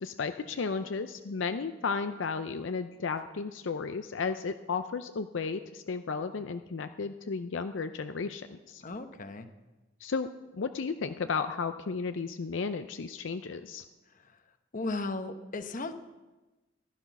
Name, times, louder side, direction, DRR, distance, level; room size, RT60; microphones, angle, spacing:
voice 1, 0.0-8.8 10.0-10.3 10.6-13.8, left 5 dB, 75° left, 9 dB, 0.5 m, -34 dB
voice 2, 8.8-9.5 14.7-15.9, left 2 dB, 45° left, 9 dB, 1.0 m, -35 dB
15.0 x 11.5 x 5.9 m, 1.1 s
head